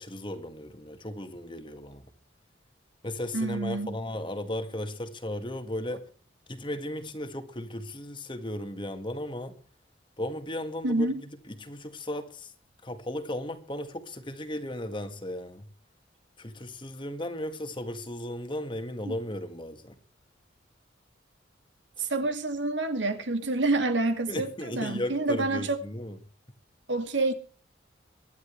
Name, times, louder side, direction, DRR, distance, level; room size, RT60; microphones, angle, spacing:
voice 1, 0.0-2.1 3.0-6.1 6.5-9.6 10.2-11.1 11.5-12.5 12.8-15.7 16.4-20.0 22.0-22.1 24.3-26.2, left 1 dB, 25° left, 1.8 m, -36 dB
voice 2, 3.3-4.0 10.8-11.2 19.0-19.2 22.0-25.8 26.9-27.3, right 2 dB, 70° right, 2.4 m, -28 dB
24.0 x 11.5 x 3.3 m
head